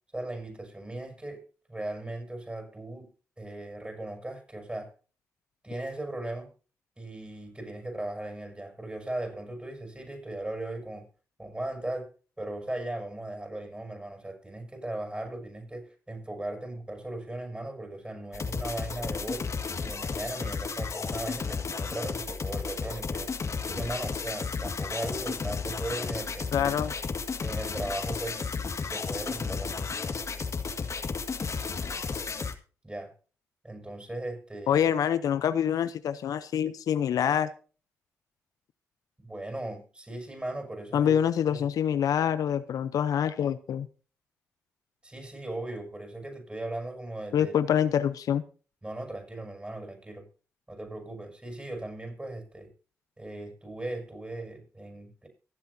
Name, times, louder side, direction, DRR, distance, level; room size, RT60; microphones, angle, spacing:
voice 1, 0.1-3.1 3.4-4.9 5.6-6.5 7.0-11.0 11.4-12.1 12.4-19.5 19.8-23.3 23.7-26.8 27.4-28.5 28.8-29.9 32.8-33.1 33.6-34.8 39.2-41.1 41.5-41.6 45.0-47.5 48.8-50.2 50.7-52.7 53.2-55.3, right 1 dB, 20° right, 4 dB, 6.6 m, -38 dB
sound 1, 18.3-32.5, left 5 dB, 55° left, 1.9 m, -33 dB
voice 2, 26.5-26.9 34.7-37.5 40.9-43.9 47.3-48.4, left 9 dB, 75° left, 13 dB, 0.7 m, -26 dB
24.0 x 8.1 x 2.8 m, 0.37 s
supercardioid pair, 45°, 6 cm